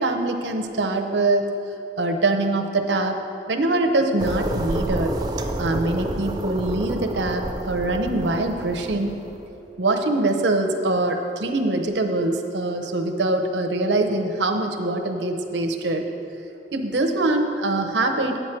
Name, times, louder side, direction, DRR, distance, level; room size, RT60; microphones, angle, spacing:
voice 1, 0.0-1.5 2.0-3.2 3.5-5.2 5.6-9.2 9.8-16.1 16.7-18.4, right 2 dB, 80° right, 5 dB, 0.8 m, -23 dB
sound 1, 4.2-9.5, right 1 dB, 20° right, 0.5 m, -29 dB
9.0 x 8.3 x 4.5 m, 2.8 s
head